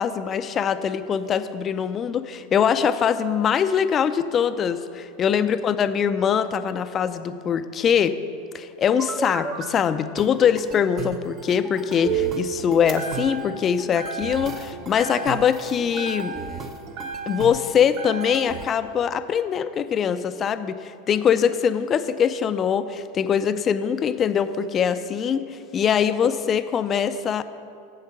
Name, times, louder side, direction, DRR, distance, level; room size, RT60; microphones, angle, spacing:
voice 1, 0.0-8.2 8.5-16.4 17.3-27.4, left 8 dB, 35° left, 12 dB, 0.5 m, -23 dB
sound 1, 8.9-9.7 10.2-18.7, right 7 dB, 35° right, 0.8 m, -33 dB
sound 2, 12.9-13.6 14.0-14.6 15.0-15.7 16.0-17.6 18.0-18.6, right 4 dB, 50° right, 1.3 m, -35 dB
8.0 x 7.9 x 5.9 m, 2.6 s
hypercardioid pair, 95°, 0 cm